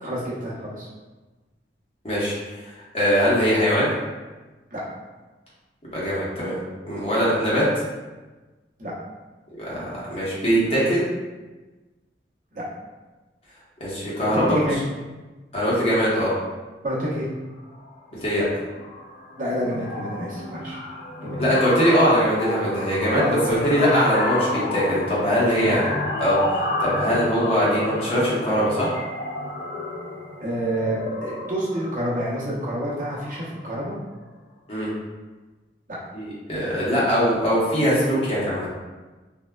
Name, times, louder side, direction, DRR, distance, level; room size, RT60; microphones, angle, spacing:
voice 1, 0.0-0.9 4.7-4.8 8.8-9.0 12.5-12.6 14.4-14.7 16.8-17.3 19.4-20.8 21.2-21.4 23.1-24.0 25.5-25.8 30.4-33.9, equal, 45° right, -7 dB, 0.7 m, -28 dB
voice 2, 2.0-2.3 2.9-3.9 5.9-6.6 6.8-7.7 9.6-11.0 13.8-14.4 15.5-16.3 18.2-18.4 21.4-25.8 26.2-26.4 26.8-28.9 34.7-34.9 36.1-38.7, equal, 35° left, -8 dB, 0.8 m, -21 dB
sound 1, 17.6-17.9 18.2-18.5 18.7-33.6, left 2 dB, 55° left, 0.4 m, -31 dB
3.4 x 2.1 x 2.2 m, 1.2 s
head